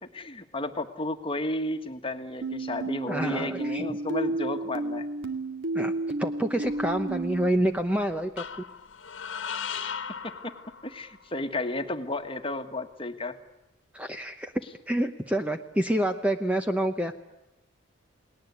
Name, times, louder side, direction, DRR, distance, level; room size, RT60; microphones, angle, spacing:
voice 1, 0.0-5.1 9.6-9.9 10.2-10.5 10.8-13.4, left 2 dB, 25° left, 7 dB, 1.6 m, -33 dB
sound 1, 2.4-7.5, right 2 dB, 70° right, 2.3 m, -32 dB
voice 2, 3.1-3.9 5.7-5.9 6.2-8.4 13.9-14.5 14.9-17.1, right 1 dB, 5° right, 6 dB, 0.9 m, -27 dB
sound 2, 6.7-7.5 8.4-11.2, left 7 dB, 65° left, 1.5 m, -38 dB
29.5 x 19.5 x 8.3 m, 0.98 s
head